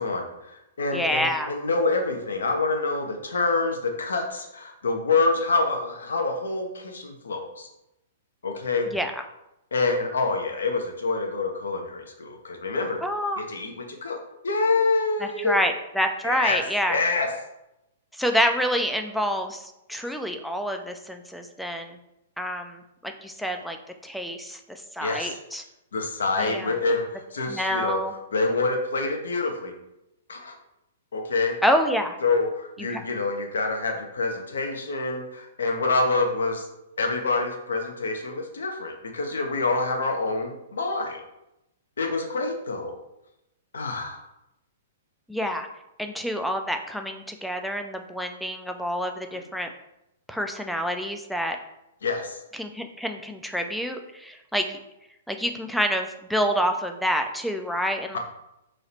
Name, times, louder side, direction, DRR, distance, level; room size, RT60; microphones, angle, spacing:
voice 1, 0.0-7.7 8.4-8.9 9.7-13.0 13.4-14.2 14.4-15.6 16.2-16.6 16.9-17.3 25.0-25.4 25.9-28.0 28.3-29.7 30.3-30.5 31.1-31.6 32.2-36.7 37.0-41.2 42.0-42.9 43.7-44.2 52.0-52.4 58.1-58.2, left 3 dB, 65° left, 3 dB, 0.7 m, -26 dB
voice 2, 0.9-1.5 8.9-9.1 13.0-13.4 15.2-17.0 18.2-19.6 19.9-22.0 22.4-23.8 24.0-25.6 26.4-26.7 27.5-28.1 31.6-32.2 32.8-33.0 45.3-45.7 46.0-49.7 50.3-51.6 52.6-54.8 55.3-58.2, equal, ahead, 4 dB, 0.4 m, -27 dB
3.1 x 2.8 x 4.1 m, 0.88 s
figure-of-eight pair, 110°, 0 cm